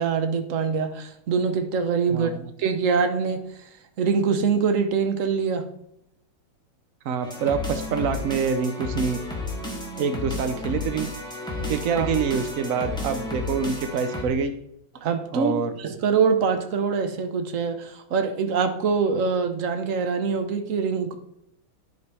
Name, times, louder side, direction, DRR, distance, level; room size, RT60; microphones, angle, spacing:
voice 1, 0.0-2.3 2.6-3.5 4.0-5.7 11.5-12.1 15.0-21.1, right 5 dB, 50° right, 7 dB, 1.0 m, -24 dB
voice 2, 2.1-2.4 7.0-9.2 10.0-11.1 11.7-14.5 15.3-15.7, right 6 dB, 85° right, 8 dB, 0.7 m, -26 dB
sound 1, 7.2-14.2, left 2 dB, ahead, 1.9 m, -32 dB
11.0 x 4.4 x 4.8 m, 0.74 s
omnidirectional pair, 2.3 m